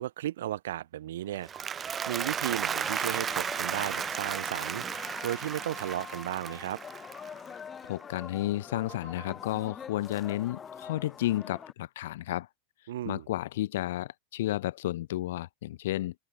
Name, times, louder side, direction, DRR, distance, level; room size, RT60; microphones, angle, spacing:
voice 1, 0.0-1.5 2.1-4.8 5.2-6.8 12.9-13.2, right 13 dB, 80° right, 1.6 m, -34 dB
Applause, 1.3-7.7, right 7 dB, 25° right, 0.4 m, -34 dB
sound 1, 1.5-1.8 3.9-4.1 6.3-6.5 8.7-9.3, right 15 dB, 40° right, 4.5 m, -48 dB
sound 2, 2.7-11.7, left 7 dB, 20° left, 3.9 m, -44 dB
voice 2, 7.8-12.5 13.1-16.1, left 15 dB, 75° left, 0.6 m, -32 dB
supercardioid pair, 125°, 0 cm